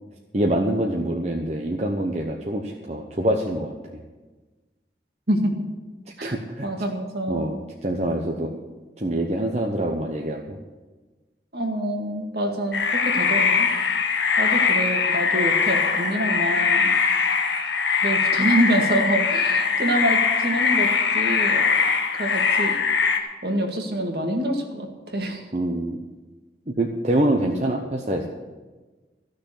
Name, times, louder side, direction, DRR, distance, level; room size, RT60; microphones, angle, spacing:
voice 1, 0.3-4.0 6.2-6.7 7.3-8.5 9.0-10.6 25.5-26.0 26.7-28.3, right 1 dB, 35° right, 1 dB, 0.9 m, -25 dB
voice 2, 5.3-5.7 6.2-6.4 6.6-7.6 11.5-13.7 14.4-16.9 18.0-21.8 22.2-22.8 23.4-25.5, right 1 dB, 60° right, 2 dB, 2.0 m, -26 dB
sound 1, 12.7-23.2, left 5 dB, 80° left, 1.2 m, -21 dB
14.5 x 6.5 x 8.4 m, 1.2 s
head